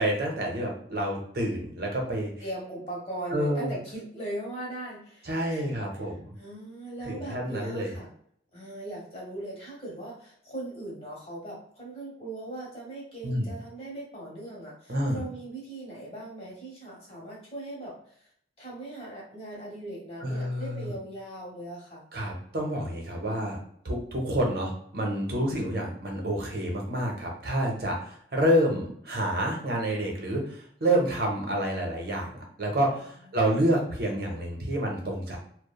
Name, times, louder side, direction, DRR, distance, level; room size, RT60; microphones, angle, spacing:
voice 1, 0.0-2.3 3.3-3.7 5.2-6.3 7.0-7.9 13.2-13.5 14.9-15.2 20.2-20.9 22.1-23.6 23.8-35.4, right 1 dB, 55° right, 0 dB, 0.6 m, -28 dB
voice 2, 2.4-5.7 6.4-8.1 8.5-18.3 18.6-22.0 25.3-25.6 33.2-33.7, right 1 dB, 35° left, -4 dB, 1.0 m, -39 dB
2.9 x 2.1 x 2.2 m, 0.65 s
head